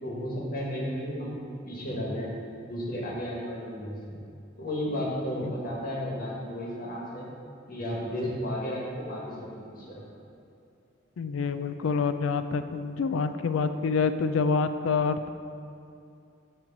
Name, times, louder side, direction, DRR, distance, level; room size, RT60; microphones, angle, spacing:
voice 1, 0.0-1.4 1.7-2.3 2.6-4.0 4.6-7.3 7.7-9.4 9.7-10.0, equal, 45° left, -4 dB, 1.4 m, -33 dB
voice 2, 11.2-15.3, left 5 dB, 85° left, 10 dB, 0.4 m, -27 dB
9.0 x 3.1 x 5.9 m, 2.6 s
head